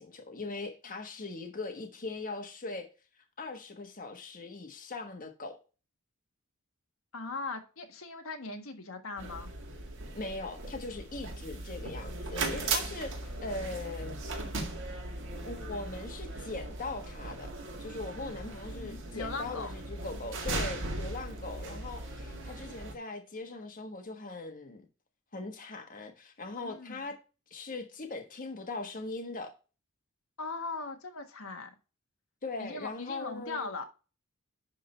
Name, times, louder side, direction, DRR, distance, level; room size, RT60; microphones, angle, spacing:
voice 1, 0.0-2.9 3.4-5.6 10.1-14.1 15.4-17.5 17.8-24.9 25.3-27.2 27.5-29.5 32.4-33.7, left 3 dB, 40° left, 1.4 m, -40 dB
voice 2, 7.1-9.5 18.2-19.7 26.6-27.1 30.4-31.7 32.6-33.8, left 3 dB, 70° left, 1.4 m, -40 dB
sound 1, 9.2-22.9, right 2 dB, 60° right, 2.0 m, -38 dB
11.0 x 3.8 x 4.4 m
head